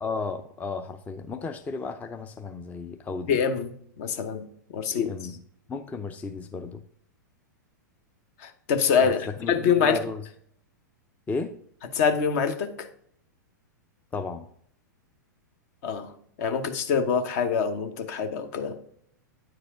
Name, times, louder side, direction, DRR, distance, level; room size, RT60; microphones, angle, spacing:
voice 1, 0.0-3.4 4.9-5.3 5.7-6.8 9.0-9.1 9.4-10.2 11.3-11.5 14.1-14.5, left 4 dB, 15° left, 0.5 m, -34 dB
voice 2, 3.3-4.5 4.7-5.1 8.4-10.0 11.9-12.9 15.8-16.1 16.4-18.8, left 6 dB, 55° left, 1.0 m, -25 dB
9.0 x 4.8 x 3.7 m
hypercardioid pair, 110°, 10 cm